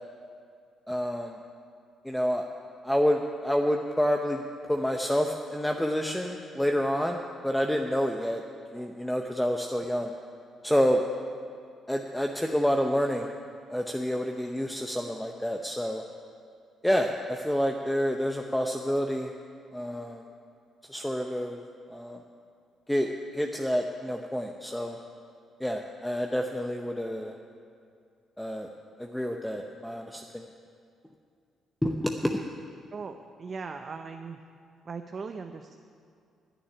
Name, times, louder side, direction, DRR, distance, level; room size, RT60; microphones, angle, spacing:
voice 1, 0.9-1.3 2.0-2.5 2.8-4.4 4.7-8.4 8.7-10.1 10.6-11.0 11.9-13.3 13.7-16.0 16.8-19.3 19.7-20.2 20.9-21.6 21.9-22.2 22.9-25.0 25.6-27.3 28.4-28.7 29.0-30.5 31.8-32.4, equal, 5° left, 3 dB, 0.7 m, -28 dB
voice 2, 32.9-34.4 34.9-35.7, right 5 dB, 45° right, 6 dB, 0.6 m, -39 dB
10.0 x 8.7 x 10.0 m, 2.3 s
cardioid pair, 90°, 0 cm